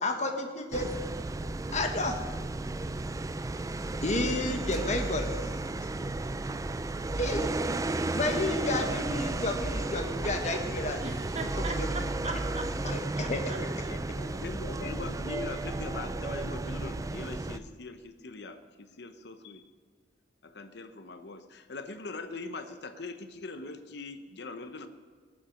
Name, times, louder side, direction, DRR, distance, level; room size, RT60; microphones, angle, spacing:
voice 1, 0.0-0.9 1.7-2.2 4.0-5.4 7.2-7.5 8.1-11.0 11.3-11.9 12.3-12.4 12.8-14.3 14.8-14.9, left 2 dB, 40° left, 4 dB, 1.4 m, -32 dB
sound 1, 0.7-17.6, right 2 dB, 20° right, 0.4 m, -33 dB
voice 2, 11.0-12.9 13.5-13.6 13.8-14.0, right 3 dB, 40° right, 4 dB, 1.3 m, -39 dB
voice 3, 14.3-19.6 20.4-24.9, left 3 dB, 65° left, 9 dB, 0.8 m, -41 dB
19.0 x 7.3 x 6.2 m, 1.5 s
head